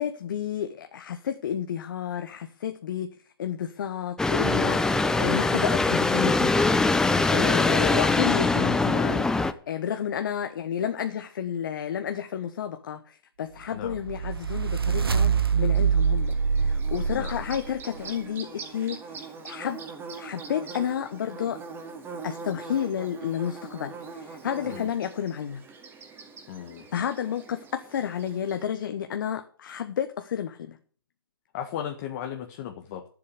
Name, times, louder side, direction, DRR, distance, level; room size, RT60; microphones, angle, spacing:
voice 1, 0.0-3.1 3.4-19.8 20.2-21.6 22.2-25.6 26.9-30.8, left 9 dB, 60° left, 8 dB, 1.2 m, -31 dB
sound 1, 4.2-9.5, left 3 dB, 5° left, 0.6 m, -22 dB
sound 2, 13.8-18.1, right 6 dB, 85° right, 1.5 m, -25 dB
Bird / Buzz, 15.7-28.7, right 4 dB, 20° right, 2.3 m, -42 dB
voice 2, 26.5-26.9 31.5-33.1, left 9 dB, 40° left, 4 dB, 1.5 m, -36 dB
11.5 x 7.7 x 8.3 m, 0.43 s
hypercardioid pair, 125°, 12 cm